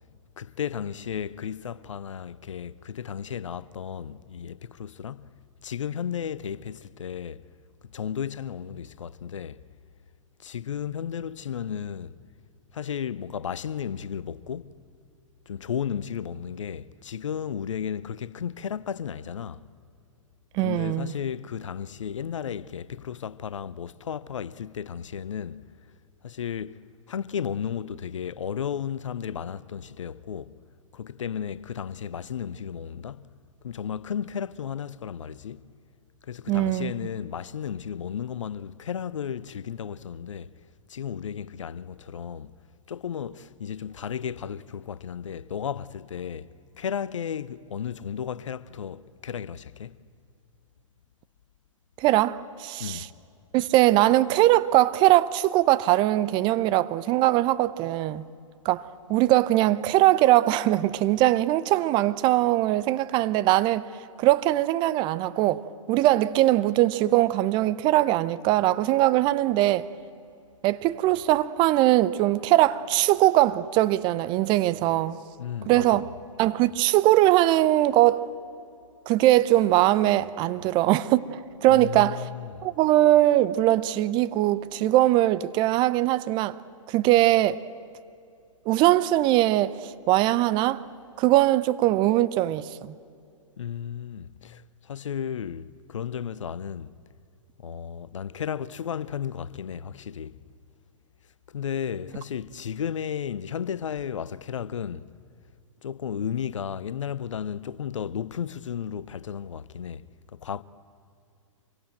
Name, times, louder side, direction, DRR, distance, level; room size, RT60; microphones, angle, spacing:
voice 1, 0.4-5.3 5.6-7.4 7.9-9.6 10.4-12.2 12.7-14.7 15.5-19.6 20.6-25.6 26.2-26.8 27.1-30.5 30.9-33.3 33.6-35.7 36.3-40.5 40.9-42.5 42.9-49.9 52.8-53.1 75.4-76.1 81.7-82.7 93.6-97.0 97.6-100.4 101.5-105.1 105.8-110.6, left 8 dB, 65° left, 0.8 m, -34 dB
voice 2, 20.5-21.1 36.5-36.9 52.0-53.0 53.5-58.2 58.6-58.8 59.1-63.9 64.2-69.9 70.6-75.2 75.7-76.1 76.4-78.3 79.1-82.2 82.6-86.6 86.9-87.6 88.7-90.8 91.2-92.9, right 15 dB, 30° right, 0.7 m, -21 dB
26.5 x 23.5 x 9.1 m
figure-of-eight pair, 115°, 17 cm